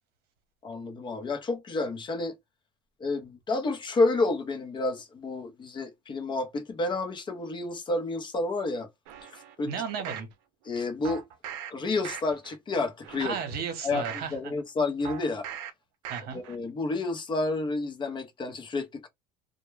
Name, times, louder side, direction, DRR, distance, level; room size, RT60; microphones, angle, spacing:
voice 1, 0.6-2.4 3.0-8.9 9.6-9.7 10.6-11.2 11.7-13.3 13.8-15.5 16.3-19.1, left 3 dB, 25° left, 0.6 m, -30 dB
sound 1, 9.1-10.3 11.0-11.7 12.0-12.5 13.0-14.3 15.0-15.7 16.0-16.5 16.9-17.0, right 9 dB, 80° right, 0.5 m, -41 dB
voice 2, 9.7-10.3 13.2-14.5 16.1-16.4, right 7 dB, 55° right, 0.9 m, -34 dB
2.1 x 2.1 x 3.2 m
cardioid pair, 140°, 20 cm